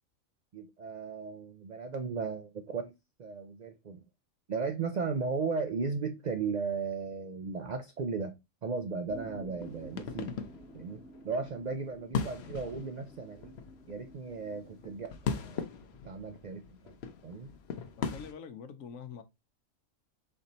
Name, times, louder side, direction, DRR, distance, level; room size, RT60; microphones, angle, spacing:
voice 1, 0.5-2.9 3.2-4.0 4.5-8.4 8.6-10.4 10.7-13.5 13.9-15.7 16.0-17.0 17.2-17.5, right 4 dB, 70° right, 0.4 m, -36 dB
sound 1, 9.1-15.6, equal, 5° left, 0.9 m, -53 dB
sound 2, 9.6-18.3, left 6 dB, 60° left, 0.8 m, -40 dB
voice 2, 18.0-19.2, left 7 dB, 80° left, 1.1 m, -45 dB
3.9 x 3.3 x 4.1 m
omnidirectional pair, 1.4 m